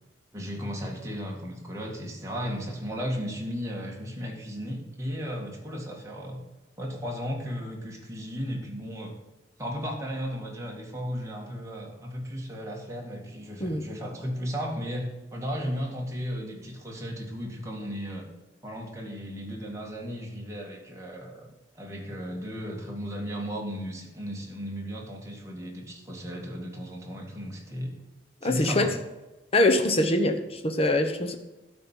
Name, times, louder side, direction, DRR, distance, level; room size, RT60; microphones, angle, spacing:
voice 1, 0.3-6.4 6.8-9.2 9.6-18.3 18.6-21.5 21.7-27.9 28.4-28.9, equal, 15° right, -1 dB, 2.0 m, -35 dB
voice 2, 28.4-28.9 29.5-31.4, left 1 dB, 35° left, 5 dB, 1.0 m, -23 dB
12.0 x 4.4 x 8.2 m, 1.1 s
head